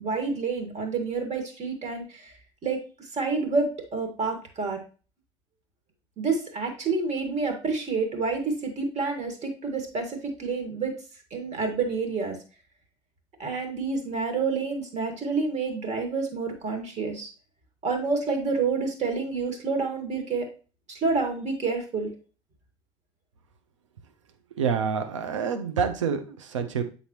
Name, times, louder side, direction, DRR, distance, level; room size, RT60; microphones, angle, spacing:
voice 1, 0.0-2.3 2.6-2.8 3.1-4.8 6.2-10.9 11.3-12.4 13.4-17.3 17.8-20.5 20.9-22.1, right 4 dB, 45° right, 5 dB, 1.9 m, -28 dB
voice 2, 24.6-26.8, right 6 dB, 80° right, 7 dB, 0.7 m, -27 dB
8.0 x 4.0 x 3.0 m, 0.36 s
figure-of-eight pair, 55°, 16 cm